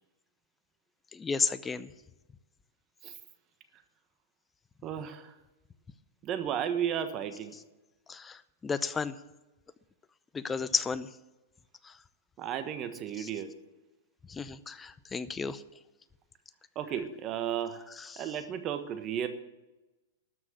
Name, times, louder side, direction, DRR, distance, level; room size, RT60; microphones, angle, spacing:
voice 1, 1.1-1.9 8.1-9.1 10.3-11.1 11.8-11.9 13.2-13.3 14.3-15.6 18.0-18.2, left 5 dB, 15° left, 14 dB, 0.6 m, -33 dB
voice 2, 4.8-5.3 6.2-7.5 12.4-13.5 16.7-17.9 18.2-19.3, right 9 dB, 35° right, 9 dB, 1.3 m, -34 dB
13.0 x 6.2 x 8.9 m, 1.1 s
hypercardioid pair, 130°, 0 cm